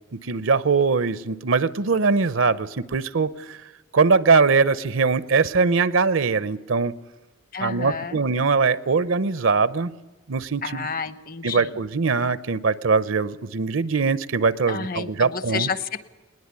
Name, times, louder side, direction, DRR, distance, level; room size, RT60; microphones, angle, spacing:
voice 1, 0.1-3.6 3.9-6.9 7.6-9.9 10.3-10.8 11.4-15.7, right 4 dB, 70° right, 17 dB, 0.7 m, -21 dB
voice 2, 7.5-8.2 10.6-11.8 14.7-16.1, left 5 dB, 45° left, 14 dB, 1.0 m, -30 dB
20.0 x 19.5 x 9.6 m, 1.2 s
head